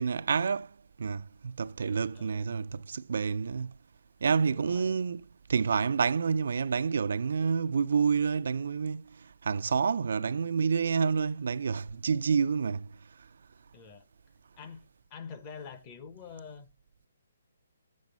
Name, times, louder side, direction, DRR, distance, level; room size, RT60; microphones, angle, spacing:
voice 1, 0.0-3.7 4.2-5.2 5.5-12.9, right 5 dB, 70° right, 0.4 m, -28 dB
voice 2, 1.9-2.5 4.5-5.0 13.7-14.0 14.6-16.7, left 6 dB, 25° left, 0.9 m, -46 dB
7.4 x 6.5 x 5.2 m
hypercardioid pair, 160°, 0 cm